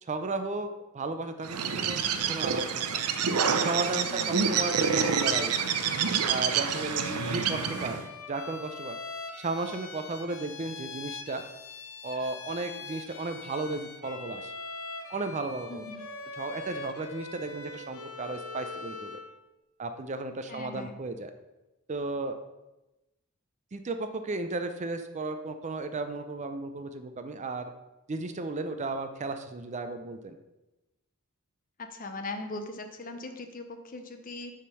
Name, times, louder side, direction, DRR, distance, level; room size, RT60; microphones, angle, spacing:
voice 1, 0.0-3.0 3.6-5.7 6.3-8.0 8.3-9.0 9.4-11.4 12.0-14.5 15.1-15.8 16.4-19.2 19.8-21.3 21.9-22.4 23.7-27.7 28.1-30.4, right 3 dB, 30° right, 8 dB, 0.4 m, -34 dB
Bird, 1.4-8.1, right 6 dB, 85° right, 0.6 m, -28 dB
voice 2, 4.1-4.5 15.7-16.0 20.5-21.0 31.8-34.5, left 2 dB, 40° left, 6 dB, 0.6 m, -40 dB
Bowed string instrument, 4.5-19.3, left 3 dB, 65° left, 0.8 m, -42 dB
6.7 x 3.7 x 6.1 m, 1.0 s
head